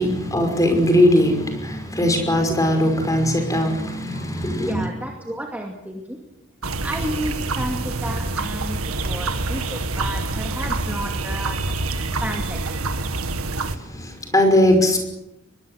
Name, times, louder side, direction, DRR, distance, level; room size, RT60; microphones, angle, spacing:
voice 1, 0.0-4.9 13.6-15.0, left 1 dB, 15° left, 5 dB, 5.7 m, -19 dB
voice 2, 4.6-6.2 6.8-12.8, right 1 dB, 5° right, 1 dB, 2.3 m, -32 dB
sound 1, 6.6-13.8, right 2 dB, 85° right, 2.0 m, -26 dB
22.5 x 22.5 x 8.0 m, 0.87 s
head